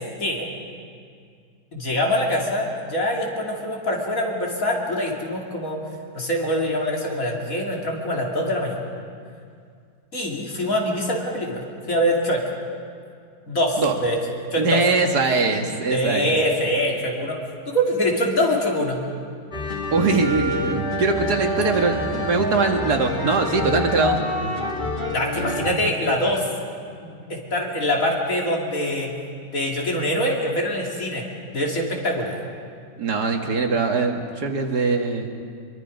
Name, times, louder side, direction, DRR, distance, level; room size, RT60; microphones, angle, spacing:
voice 1, 1.7-5.8 6.1-8.8 10.1-12.4 13.5-14.2 14.5-14.8 15.9-17.4 17.7-19.0 25.1-26.4 27.0-29.1 29.5-31.2 31.5-32.4, equal, 60° left, -1 dB, 3.3 m, -24 dB
voice 2, 14.6-16.4 19.9-24.2 33.0-35.3, right 3 dB, 85° right, 3 dB, 2.3 m, -22 dB
sound 1, 19.5-25.7, left 1 dB, 30° left, 1.7 m, -27 dB
24.0 x 23.0 x 5.2 m, 2.2 s
omnidirectional pair, 1.7 m